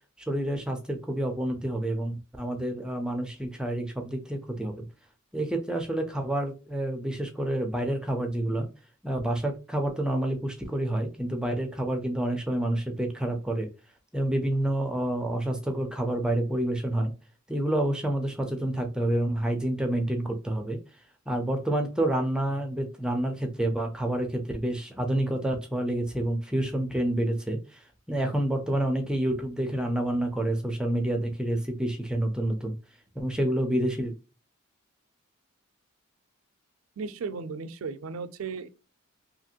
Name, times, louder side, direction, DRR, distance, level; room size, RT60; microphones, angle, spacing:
voice 1, 0.2-4.8 5.3-8.7 9.0-13.7 14.1-17.1 17.5-20.8 21.3-32.7 33.2-34.1, right 1 dB, 5° right, 0.4 m, -28 dB
voice 2, 37.0-38.7, right 5 dB, 70° right, 0.4 m, -35 dB
2.9 x 2.4 x 2.7 m
head